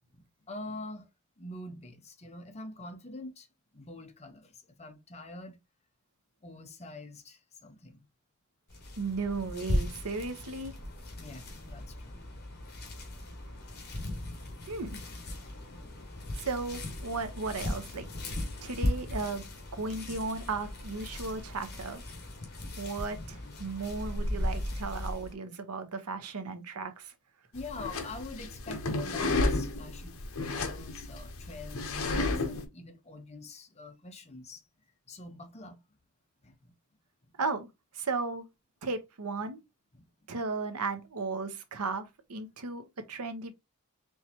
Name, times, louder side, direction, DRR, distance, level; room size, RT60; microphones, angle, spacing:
voice 1, 0.1-1.1 1.4-3.5 3.7-5.6 6.4-8.0 11.2-12.2 18.4-18.6 22.6-22.7 23.4-23.5 27.5-34.7 35.1-35.8 36.4-36.7 39.9-40.1, left 2 dB, 30° left, 0.8 m, -45 dB
sound 1, 8.7-25.3, left 1 dB, 45° left, 1.4 m, -37 dB
voice 2, 9.0-10.7 14.7-15.0 16.4-18.1 18.6-19.4 19.7-22.0 22.8-27.1 37.4-37.7 37.9-38.4 38.8-39.6 40.3-43.5, right 4 dB, 90° right, 0.8 m, -35 dB
sound 2, 27.6-32.6, left 2 dB, 65° left, 0.8 m, -32 dB
4.5 x 3.2 x 2.8 m
head